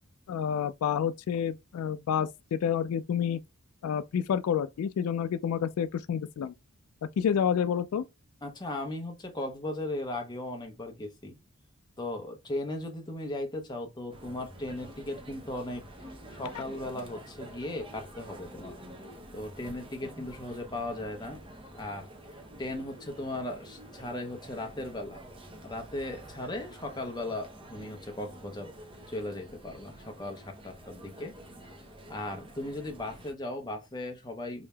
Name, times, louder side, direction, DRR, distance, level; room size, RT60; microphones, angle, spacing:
voice 1, 0.3-3.4 3.8-6.5 7.2-8.0, left 8 dB, 80° left, 0.3 m, -29 dB
voice 2, 8.4-11.4 12.0-15.8 16.3-18.7 19.3-21.4 21.7-22.1 22.6-25.2 25.6-28.7 29.1-31.3 32.1-34.7, left 1 dB, 20° left, 0.8 m, -37 dB
sound 1, 14.1-33.3, right 1 dB, 25° right, 0.7 m, -48 dB
4.9 x 2.7 x 2.2 m
head